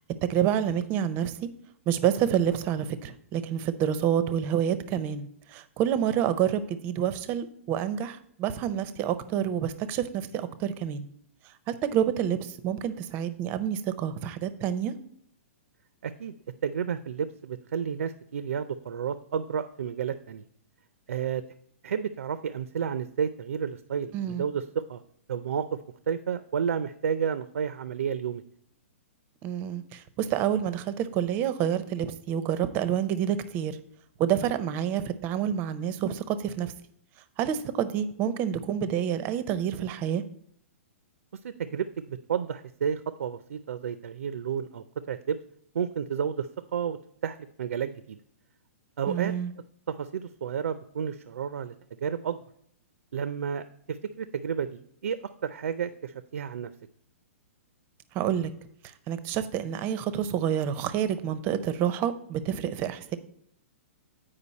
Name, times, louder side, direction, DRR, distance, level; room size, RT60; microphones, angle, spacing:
voice 1, 0.2-1.5 1.9-11.1 11.7-15.0 24.1-24.4 29.4-33.8 34.2-36.7 37.4-40.2 49.1-49.5 58.1-58.5 59.1-63.2, right 9 dB, 25° right, 13 dB, 0.5 m, -28 dB
voice 2, 16.0-16.3 16.6-20.4 21.1-21.4 21.8-25.0 25.3-25.8 26.1-28.4 41.4-45.4 45.7-47.0 47.2-48.2 49.0-49.3 49.9-51.7 52.0-52.4 53.1-56.7, right 7 dB, 90° right, 12 dB, 0.5 m, -31 dB
8.5 x 5.1 x 4.1 m, 0.66 s
hypercardioid pair, 155°, 8 cm